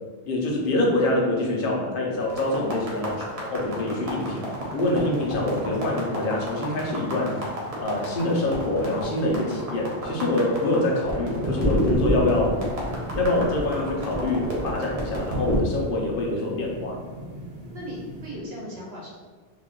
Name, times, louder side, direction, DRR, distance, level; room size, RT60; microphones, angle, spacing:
voice 1, 0.3-4.4 4.7-7.4 7.8-12.6 13.1-17.0, left 2 dB, 55° left, -1 dB, 0.8 m, -25 dB
sound 1, 2.2-15.6, equal, 40° right, 0.7 m, -29 dB
sound 2, 3.4-18.4, equal, 85° right, 0.9 m, -44 dB
sound 3, 11.9-18.3, right 1 dB, 30° left, 0.5 m, -45 dB
voice 2, 17.7-19.1, equal, 65° right, -4 dB, 1.2 m, -37 dB
2.9 x 2.4 x 3.7 m, 1.4 s
omnidirectional pair, 1.1 m